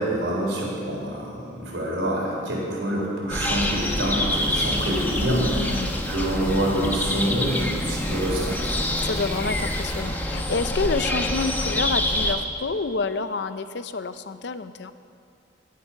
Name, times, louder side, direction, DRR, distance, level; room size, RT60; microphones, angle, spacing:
voice 1, 0.0-5.8 6.1-8.7, right 1 dB, 85° right, -3 dB, 4.0 m, -26 dB
sound 1, 3.3-12.3, left 1 dB, 10° left, 0.9 m, -26 dB
sound 2, 4.3-10.0, equal, 15° right, 2.6 m, -43 dB
voice 2, 5.4-5.9 9.0-14.9, left 4 dB, 65° left, 11 dB, 0.6 m, -28 dB
18.0 x 8.6 x 5.8 m, 2.4 s
head